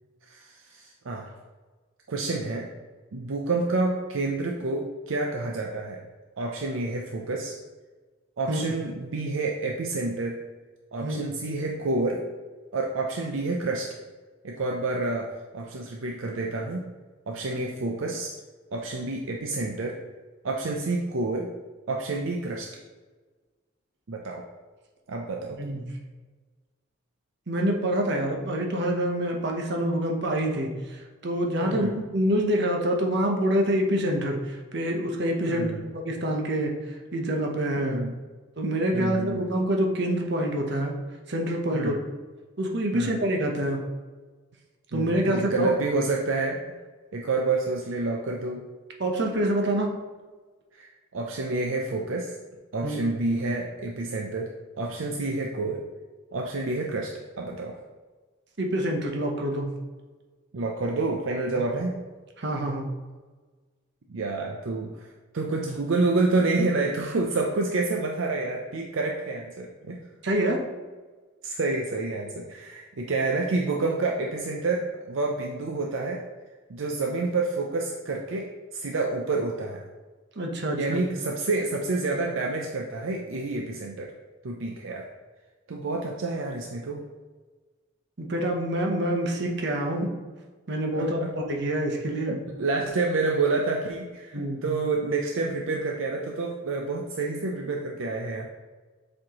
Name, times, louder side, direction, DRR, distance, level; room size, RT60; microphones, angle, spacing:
voice 1, 0.3-1.3 2.1-2.7 3.1-6.0 6.4-7.6 8.4-10.4 10.9-12.2 12.7-13.9 14.4-16.9 17.3-18.3 18.7-20.0 20.4-21.5 21.9-22.7 24.1-24.4 25.1-25.6 31.6-31.9 35.5-35.9 37.8-38.2 38.9-39.4 41.7-42.0 42.9-43.1 44.9-46.6 47.1-48.7 50.7-52.3 52.7-54.5 54.8-55.8 56.3-57.8 60.5-62.0 64.1-70.0 71.4-76.2 76.7-79.8 80.8-84.1 84.4-85.1 85.7-87.0 90.9-91.3 92.3-98.5, right 3 dB, 75° right, 1 dB, 0.5 m, -28 dB
voice 2, 25.6-25.9 27.5-36.7 37.1-38.0 38.6-40.9 41.3-42.0 42.6-43.8 44.9-45.7 49.0-49.9 52.8-53.0 58.6-59.7 61.6-61.7 62.4-62.9 70.2-70.6 80.4-81.0 88.2-90.1 90.7-92.4 94.3-94.6, right 1 dB, 60° right, 1 dB, 0.9 m, -26 dB
7.4 x 4.3 x 3.0 m, 1.4 s
head